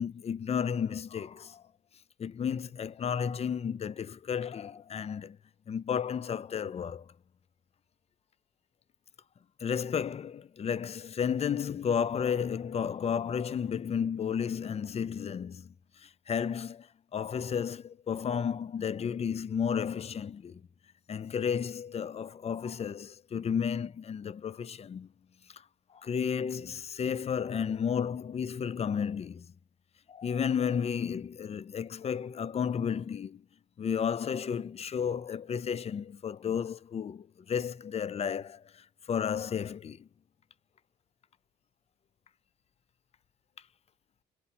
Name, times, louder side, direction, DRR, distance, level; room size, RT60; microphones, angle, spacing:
voice 1, 0.0-1.6 2.2-5.4 5.7-7.1 9.6-15.7 16.0-20.6 21.1-25.1 25.5-25.6 26.0-29.5 30.1-33.4 33.8-40.1, left 7 dB, 30° left, 0.4 m, -32 dB
4.1 x 4.0 x 2.8 m
cardioid pair, 90°, 20 cm